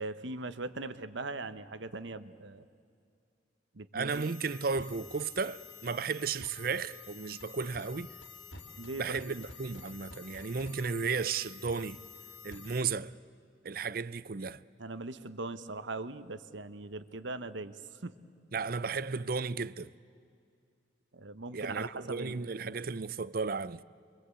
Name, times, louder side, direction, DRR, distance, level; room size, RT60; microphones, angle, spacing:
voice 1, 0.0-2.7 3.7-4.3 8.8-9.4 12.5-12.6 14.8-18.1 21.1-22.5, right 3 dB, 80° right, 1.1 m, -40 dB
voice 2, 3.9-8.1 9.0-12.0 12.4-13.2 13.6-14.6 18.5-19.9 21.5-23.8, right 5 dB, 50° right, 0.6 m, -34 dB
sound 1, 4.1-12.8, left 5 dB, 85° left, 3.1 m, -49 dB
27.0 x 24.0 x 8.4 m
head